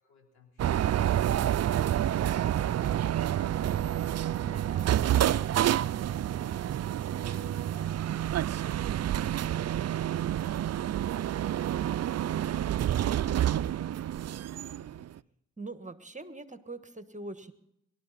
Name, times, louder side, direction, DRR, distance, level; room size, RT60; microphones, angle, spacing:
voice 1, 0.0-4.7 5.9-15.1, left 5 dB, 75° left, 2 dB, 3.6 m, -59 dB
sound 1, 0.6-15.2, right 11 dB, 45° right, 0.5 m, -28 dB
voice 2, 4.2-5.2 15.6-17.5, right 2 dB, 20° right, 10 dB, 1.5 m, -43 dB
23.5 x 12.5 x 4.2 m, 0.80 s
supercardioid pair, 40°, 37 cm